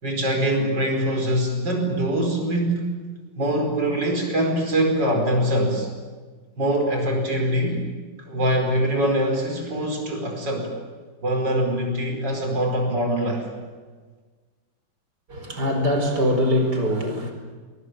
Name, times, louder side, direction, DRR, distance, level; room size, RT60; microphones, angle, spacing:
voice 1, 0.0-2.9 3.4-5.9 6.6-7.8 8.2-10.7 11.2-13.5, right 1 dB, 90° right, 2 dB, 5.6 m, -23 dB
voice 2, 15.3-17.3, equal, 70° right, 5 dB, 5.4 m, -22 dB
24.0 x 22.5 x 9.3 m, 1.4 s
omnidirectional pair, 1.9 m